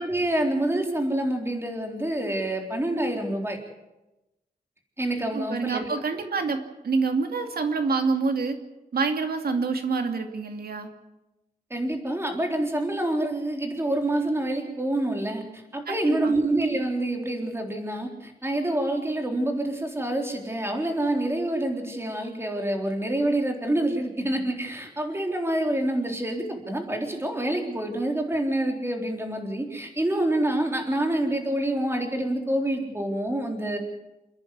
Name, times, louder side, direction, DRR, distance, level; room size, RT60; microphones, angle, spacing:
voice 1, 0.0-3.6 5.0-5.8 11.7-15.4 15.7-33.8, right 1 dB, 15° right, 2 dB, 4.0 m, -27 dB
voice 2, 5.3-8.6 8.9-10.9 15.9-16.3, right 4 dB, 75° right, 5 dB, 2.6 m, -27 dB
28.5 x 10.5 x 9.6 m, 0.99 s
wide cardioid pair, 115°, 16 cm